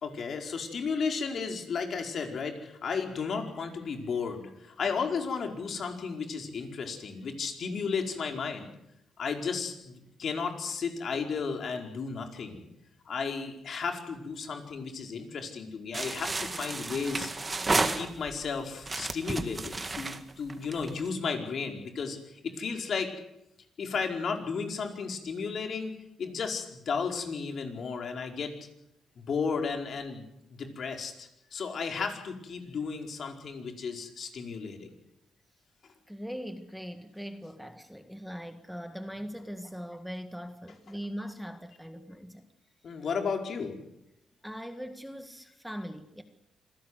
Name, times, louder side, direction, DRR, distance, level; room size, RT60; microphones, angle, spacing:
voice 1, 0.0-8.7 9.2-12.7 13.0-17.5 17.8-23.1 23.8-28.5 29.2-30.2 30.6-34.9 42.8-43.8, left 5 dB, 55° left, 4 dB, 4.8 m, -34 dB
sound 1, 15.9-18.4 18.8-21.1, right 3 dB, 25° right, 1.9 m, -32 dB
voice 2, 36.1-42.5 44.4-46.2, equal, ahead, 8 dB, 1.8 m, -41 dB
26.5 x 17.0 x 8.2 m, 0.83 s
cardioid pair, 100°, 0 cm